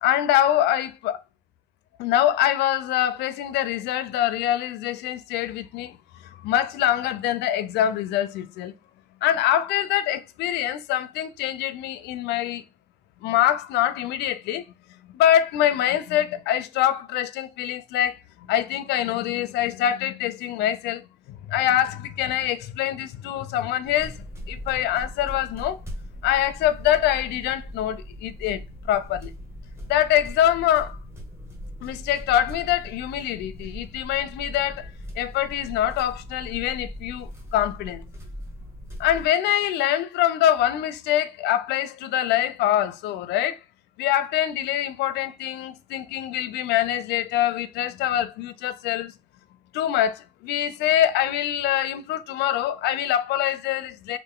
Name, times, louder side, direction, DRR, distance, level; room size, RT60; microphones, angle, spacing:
voice 1, 0.0-1.2 2.0-6.0 6.4-8.7 9.2-12.6 13.2-14.6 15.0-25.8 26.2-29.3 29.9-31.0 31.8-34.9 35.2-38.1 39.0-43.6 44.0-49.1 49.7-54.2, left 11 dB, 80° left, 0.5 m, -24 dB
sound 1, 23.8-39.3, equal, 15° right, 1.3 m, -39 dB
3.3 x 2.5 x 3.5 m
cardioid pair, 110°, 17 cm